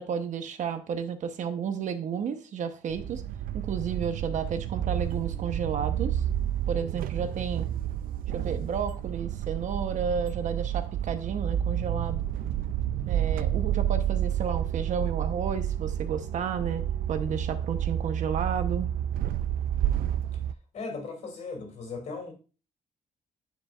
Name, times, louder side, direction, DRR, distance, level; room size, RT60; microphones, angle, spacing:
voice 1, 0.0-3.2 3.5-6.2 6.7-7.7 8.3-12.3 13.1-16.8 17.1-18.9, right 7 dB, 60° right, 0.9 m, -32 dB
sound 1, 2.9-20.5, right 10 dB, 85° right, 0.4 m, -30 dB
voice 2, 20.7-22.3, left 4 dB, 55° left, 2.8 m, -37 dB
9.4 x 7.1 x 2.4 m
wide cardioid pair, 170°, 14 cm